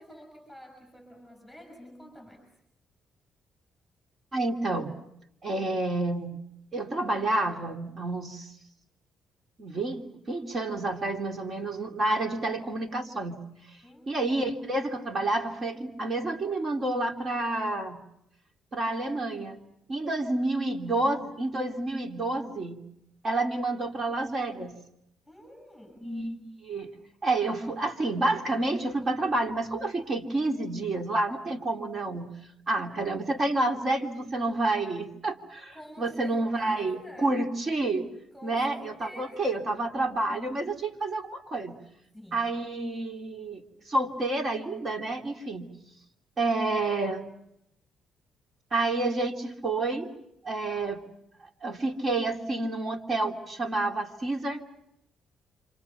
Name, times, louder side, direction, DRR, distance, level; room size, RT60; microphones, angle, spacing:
voice 1, 0.0-2.4 13.8-14.3 25.3-26.0 35.7-37.4 38.3-39.6 42.1-42.6, equal, ahead, 3 dB, 6.7 m, -48 dB
voice 2, 4.3-4.9 5.4-6.3 6.7-8.5 9.6-10.0 10.3-13.4 14.1-18.0 18.7-19.6 19.9-22.8 23.2-24.7 26.0-26.9 27.2-32.3 32.7-38.1 38.4-41.8 42.3-45.7 46.4-47.3 48.7-50.1 50.4-51.0 51.6-54.6, right 2 dB, 45° right, 3 dB, 3.0 m, -29 dB
29.0 x 26.5 x 5.9 m, 0.79 s
cardioid pair, 90°, 0 cm